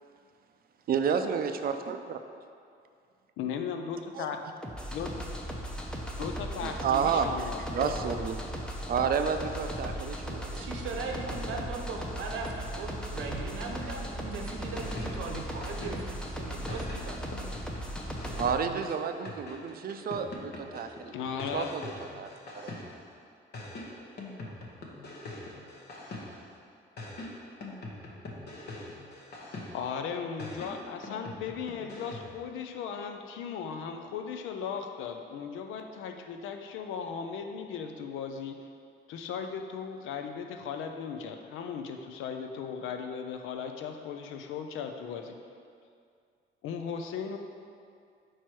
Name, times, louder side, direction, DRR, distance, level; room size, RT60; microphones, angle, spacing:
voice 1, 0.9-2.2 4.2-4.3 6.6-8.4 8.9-10.7 18.3-21.1 21.5-22.8, right 6 dB, 50° right, 8 dB, 0.4 m, -31 dB
voice 2, 3.4-4.4 4.9-5.3 6.2-8.3 21.1-21.7 29.7-38.7 39.1-45.3 46.6-47.4, left 6 dB, 85° left, 6 dB, 0.5 m, -37 dB
sound 1, 4.6-18.5, equal, 5° left, 0.6 m, -37 dB
voice 3, 10.5-17.2 18.6-18.9, right 3 dB, 90° right, 2 dB, 0.7 m, -38 dB
sound 2, 14.6-16.3 16.7-23.1 23.5-26.6 27.0-30.0 30.4-32.4, left 2 dB, 55° left, 1.0 m, -43 dB
4.6 x 4.5 x 4.5 m, 2.3 s
cardioid pair, 90°, 20 cm